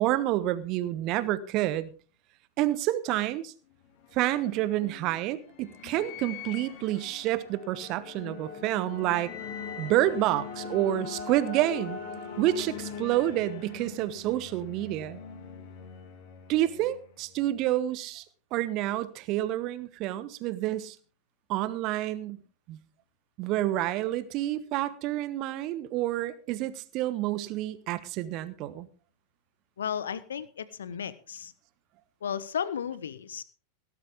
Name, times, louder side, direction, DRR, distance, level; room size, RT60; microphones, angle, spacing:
voice 1, 0.0-1.9 2.6-3.5 4.1-9.3 9.8-12.0 12.4-15.2 16.5-18.2 18.5-21.0 21.5-22.4 22.7-22.8 23.4-28.9, right 14 dB, 40° right, 1.2 m, -28 dB
sound 1, 3.7-17.4, left 6 dB, 50° left, 3.2 m, -42 dB
voice 2, 29.8-31.5 32.2-33.4, left 8 dB, 65° left, 1.1 m, -34 dB
17.5 x 12.5 x 3.6 m
figure-of-eight pair, 90°, 0 cm